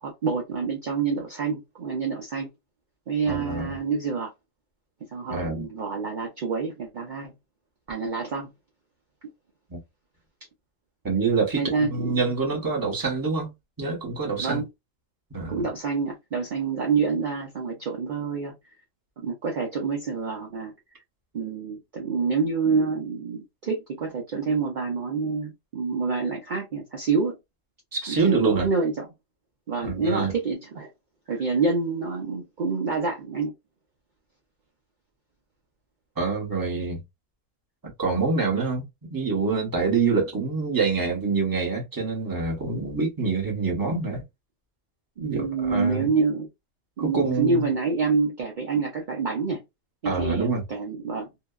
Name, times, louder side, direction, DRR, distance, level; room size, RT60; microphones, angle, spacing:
voice 1, 0.0-2.5 3.1-4.3 5.1-7.3 7.9-8.5 11.5-12.2 14.4-14.7 15.5-18.5 19.2-20.7 21.3-27.3 28.1-29.1 29.7-30.9 31.3-33.5 45.2-46.5 47.0-49.6 50.0-51.3, right 4 dB, 60° right, 0.5 m, -27 dB
voice 2, 3.3-3.7 5.3-5.7 9.7-9.8 11.0-14.6 15.3-15.6 27.9-28.7 29.8-30.3 36.2-37.0 37.8-38.8 39.1-44.2 45.2-46.1 47.0-47.7 50.0-50.6, right 4 dB, 20° right, 0.8 m, -26 dB
2.8 x 2.2 x 2.2 m
omnidirectional pair, 1.5 m